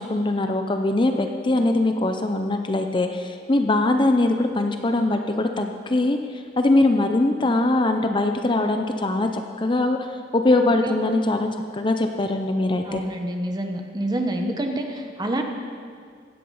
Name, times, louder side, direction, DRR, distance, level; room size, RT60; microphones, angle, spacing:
voice 1, 0.0-10.0 10.3-13.0, left 2 dB, 25° left, 5 dB, 0.6 m, -22 dB
voice 2, 12.9-15.4, right 1 dB, 20° right, 4 dB, 1.1 m, -27 dB
16.0 x 9.7 x 5.6 m, 2.1 s
head